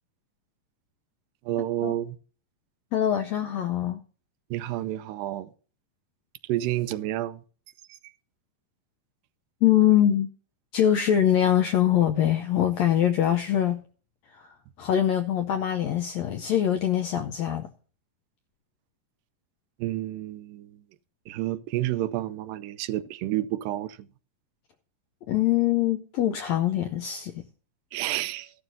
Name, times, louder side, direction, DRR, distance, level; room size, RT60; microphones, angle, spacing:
voice 1, 1.5-2.2 4.5-5.5 6.5-7.4 7.9-8.0 19.8-20.8 21.3-24.0 27.9-28.5, right 14 dB, 90° right, 2.3 m, -30 dB
voice 2, 2.9-4.0 9.6-10.3 10.7-13.8 14.4-14.5 14.8-17.7 25.3-27.4, left 11 dB, 85° left, 1.5 m, -23 dB
15.0 x 11.5 x 2.6 m
omnidirectional pair, 3.9 m